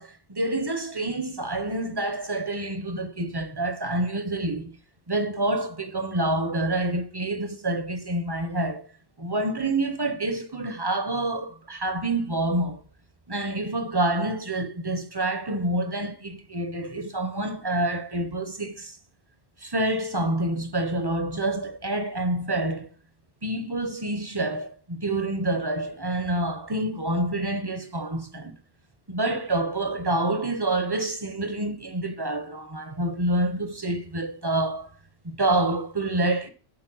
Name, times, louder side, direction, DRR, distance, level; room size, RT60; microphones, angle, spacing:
voice 1, 0.0-4.7 5.1-8.9 9.2-12.8 13.3-19.0 19.6-22.9 23.4-28.6 29.1-34.9 35.2-36.5, right 1 dB, 25° right, 0.7 m, -27 dB
8.9 x 4.2 x 6.1 m
omnidirectional pair, 1.2 m